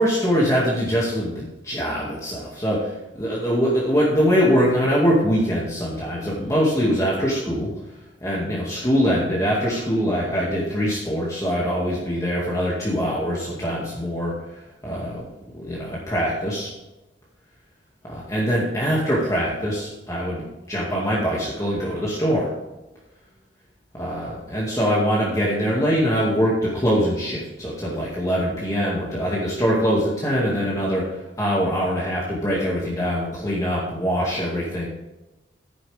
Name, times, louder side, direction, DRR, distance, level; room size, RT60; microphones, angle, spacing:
voice 1, 0.0-7.7 8.2-15.3 15.6-16.7 18.1-22.5 23.9-34.9, equal, 20° left, -5 dB, 2.2 m, -23 dB
12.0 x 9.2 x 3.5 m, 1.0 s
head